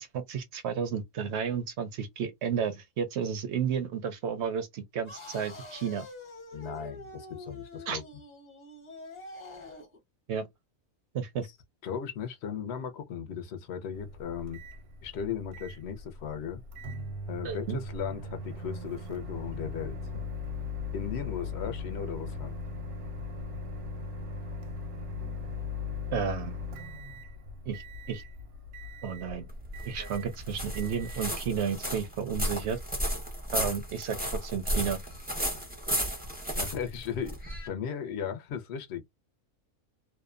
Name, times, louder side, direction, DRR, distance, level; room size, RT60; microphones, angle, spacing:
voice 1, 0.0-6.1 7.9-8.0 10.3-10.5 11.1-11.5 17.4-17.8 26.1-26.6 27.7-27.8 28.1-28.2 29.0-29.5 29.9-32.8 33.5-35.0, right 7 dB, 65° right, 0.7 m, -32 dB
sound 1, 5.0-10.0, left 2 dB, 35° left, 0.9 m, -46 dB
voice 2, 6.5-8.0 11.4-11.5 11.8-14.6 15.0-16.6 17.3-20.2 20.9-22.5 36.5-39.0, left 7 dB, 65° left, 0.7 m, -36 dB
Microwave oven, 13.9-31.9, left 3 dB, 85° right, 1.1 m, -39 dB
sound 2, 29.5-37.7, equal, 10° right, 0.4 m, -33 dB
2.7 x 2.1 x 2.4 m
omnidirectional pair, 1.6 m